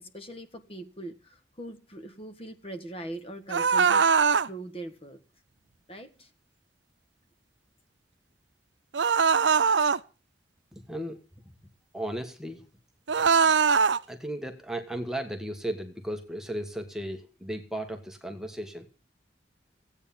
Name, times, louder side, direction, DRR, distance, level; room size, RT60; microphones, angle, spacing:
voice 1, 0.0-4.1 4.4-5.2 5.9-6.3, right 1 dB, 30° left, 8 dB, 1.7 m, -41 dB
sound 1, 3.5-4.5 8.9-10.0 13.1-14.0, right 5 dB, 85° right, 0.6 m, -21 dB
voice 2, 10.7-11.2 11.9-12.7 13.4-13.5 14.1-18.9, right 1 dB, 5° right, 5 dB, 1.4 m, -35 dB
16.5 x 8.9 x 7.2 m, 0.35 s
head